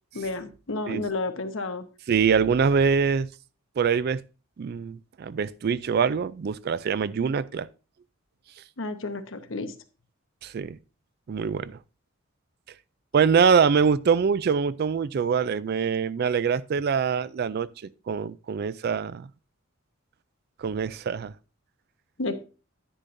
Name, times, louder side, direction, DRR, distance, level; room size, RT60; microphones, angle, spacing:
voice 1, 0.1-1.8 8.8-9.7 22.2-22.4, left 3 dB, 65° left, 1.0 m, -31 dB
voice 2, 2.1-3.3 3.8-4.2 4.6-7.7 10.4-10.8 11.3-11.8 13.1-17.7 18.1-19.3 20.6-21.3, right 6 dB, 50° right, 0.3 m, -24 dB
10.0 x 9.9 x 2.6 m
head